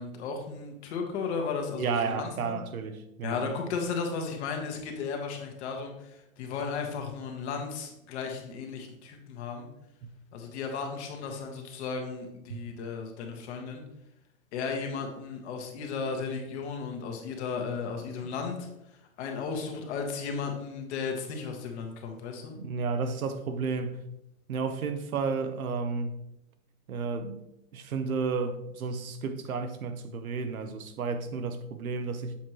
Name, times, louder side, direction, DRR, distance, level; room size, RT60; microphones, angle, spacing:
voice 1, 0.0-2.6 3.2-9.7 10.3-13.8 14.5-18.7 19.2-22.5, left 5 dB, 55° left, 1.4 m, -35 dB
voice 2, 1.8-3.5 12.5-12.6 22.6-24.0 24.5-26.1 26.9-27.4 27.7-32.4, right 5 dB, 85° right, 0.9 m, -32 dB
7.3 x 4.5 x 3.0 m
hypercardioid pair, 130°, 42 cm